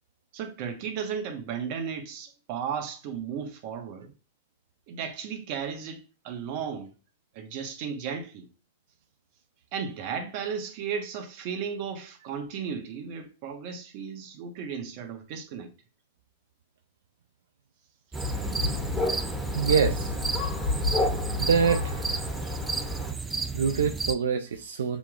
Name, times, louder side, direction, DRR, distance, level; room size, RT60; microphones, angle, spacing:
voice 1, 0.3-4.1 4.9-6.9 7.3-8.5 9.7-15.7 18.7-18.8, right 7 dB, 50° right, 1.1 m, -35 dB
Thunder, 18.1-23.1, left 2 dB, 5° left, 1.8 m, -30 dB
sound 1, 18.1-24.1, right 4 dB, 10° right, 0.4 m, -32 dB
voice 2, 19.5-20.1 21.4-22.3 23.5-25.0, right 6 dB, 85° right, 0.4 m, -25 dB
6.8 x 3.1 x 2.4 m
hypercardioid pair, 120°, 0 cm